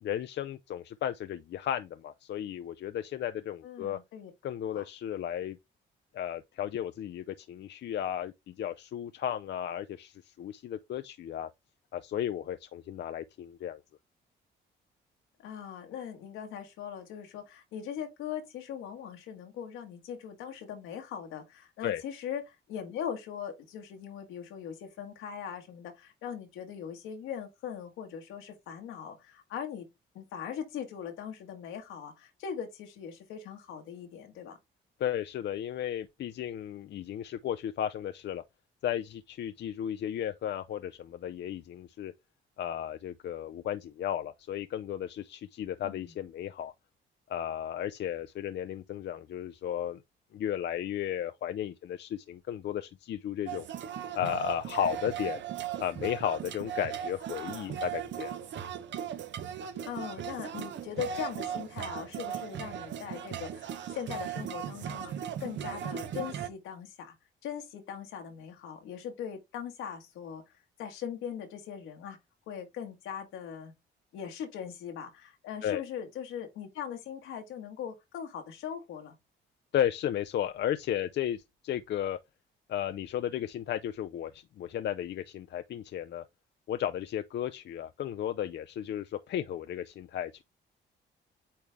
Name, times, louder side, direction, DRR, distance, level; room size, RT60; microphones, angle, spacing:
voice 1, 0.0-4.0 4.4-5.6 6.1-11.5 11.9-13.8 21.8-22.0 35.0-38.4 38.8-42.1 42.6-46.7 47.3-50.0 50.3-53.7 54.1-55.4 55.8-58.4 75.6-75.8 79.7-82.2 82.7-86.2 86.7-90.3, left 10 dB, 60° left, 0.5 m, -34 dB
voice 2, 3.6-4.3 4.7-4.8 15.4-29.9 30.2-34.6 45.8-46.1 59.8-67.1 67.4-70.4 70.8-72.2 72.5-73.7 74.1-79.2, left 8 dB, 90° left, 1.7 m, -40 dB
sound 1, 53.5-66.5, right 9 dB, 65° right, 0.9 m, -37 dB
8.6 x 3.2 x 3.5 m
cardioid pair, 90°, 20 cm